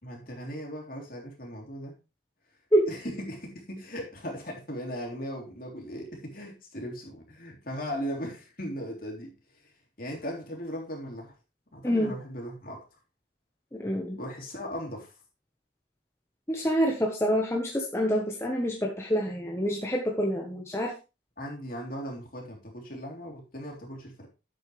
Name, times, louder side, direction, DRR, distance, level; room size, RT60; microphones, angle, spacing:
voice 1, 0.0-1.9 2.9-9.7 10.0-11.3 11.7-12.8 14.1-15.2 21.4-24.3, equal, 50° left, 3.4 m, -38 dB
voice 2, 13.7-14.2 16.5-20.9, equal, 15° left, 1.2 m, -27 dB
11.0 x 8.1 x 3.3 m
head